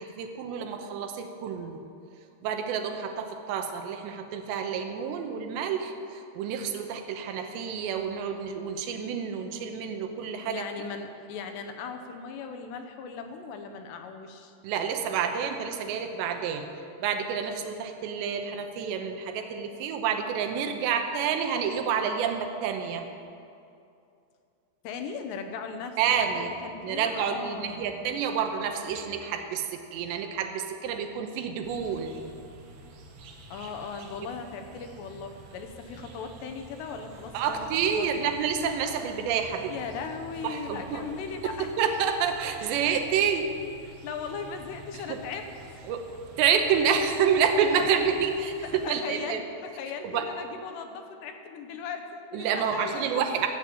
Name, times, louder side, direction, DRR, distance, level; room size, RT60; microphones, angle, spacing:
voice 1, 0.0-1.8 2.4-10.6 14.6-16.7 17.0-23.0 26.0-26.5 26.8-32.1 37.3-39.7 40.4-41.1 41.4-43.5 44.9-45.2 45.9-46.0 46.4-48.5 48.9-49.4 50.0-50.3 52.3-53.5, right 7 dB, 85° right, 5 dB, 3.0 m, -28 dB
voice 2, 10.4-14.5 24.8-28.0 33.5-38.3 39.7-41.7 43.8-45.8 48.6-53.2, left 5 dB, 75° left, 6 dB, 2.9 m, -38 dB
sound 1, 31.6-48.9, right 2 dB, 65° right, 2.7 m, -48 dB
14.0 x 7.3 x 8.5 m, 2.5 s
omnidirectional pair, 5.1 m